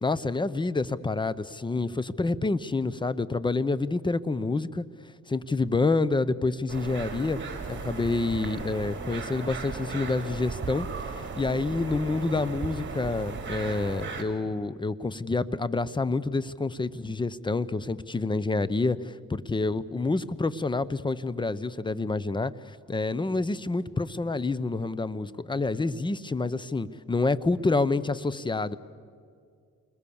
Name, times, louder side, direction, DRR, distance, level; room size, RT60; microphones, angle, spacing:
voice 1, 0.0-4.9 5.3-7.4 7.7-10.9 11.4-28.8, left 3 dB, 15° left, 17 dB, 0.8 m, -28 dB
sound 1, 6.7-14.2, right 4 dB, 40° right, 3.6 m, -36 dB
28.5 x 21.5 x 7.1 m, 2.3 s
cardioid pair, 90°, 30 cm